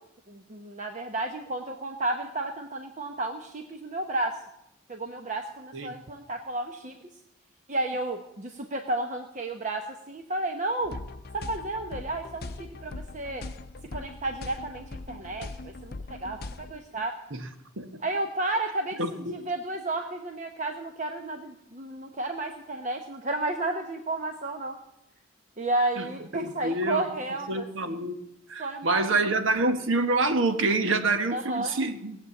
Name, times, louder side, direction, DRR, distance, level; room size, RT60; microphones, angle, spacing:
voice 1, 0.3-4.4 4.9-7.0 7.7-11.0 11.3-13.4 13.9-15.5 15.8-17.1 18.0-19.0 19.3-24.8 25.6-28.0 28.6-29.0 31.3-31.8, right 2 dB, 40° right, 4 dB, 0.9 m, -32 dB
sound 1, 10.8-16.8, left 2 dB, 50° left, 0.6 m, -40 dB
voice 2, 19.0-19.4 26.0-26.1 26.3-27.0 27.5-28.2 28.5-32.2, right 2 dB, 75° right, 8 dB, 1.2 m, -27 dB
18.0 x 7.5 x 8.3 m, 0.85 s
head